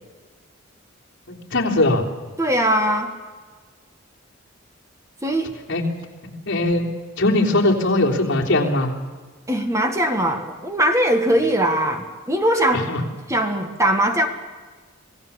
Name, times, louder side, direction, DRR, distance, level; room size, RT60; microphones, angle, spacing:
voice 1, 1.5-2.0 5.7-5.8 6.5-6.9 7.2-8.9 12.7-13.0, left 2 dB, 60° left, -1 dB, 3.4 m, -19 dB
voice 2, 2.4-3.1 5.2-5.5 9.5-12.9 13.3-14.3, right 1 dB, 15° right, 6 dB, 1.7 m, -20 dB
26.0 x 17.0 x 7.1 m, 1.4 s
head